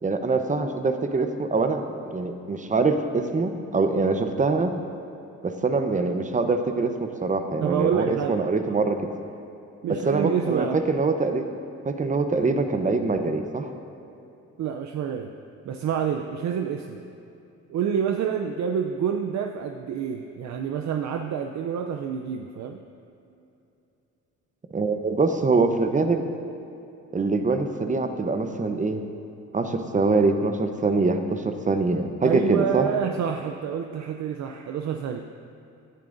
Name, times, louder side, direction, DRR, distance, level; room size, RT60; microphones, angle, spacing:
voice 1, 0.0-4.7 5.4-9.0 9.9-11.5 11.8-13.7 24.7-26.3 27.1-29.0 29.5-32.9, right 3 dB, 25° right, 7 dB, 0.9 m, -24 dB
voice 2, 7.6-8.4 9.8-10.9 14.6-15.3 15.6-17.0 17.7-22.8 32.2-35.2, right 8 dB, 65° right, 4 dB, 0.6 m, -28 dB
17.0 x 10.5 x 2.6 m, 2.8 s
cardioid pair, 90°, 30 cm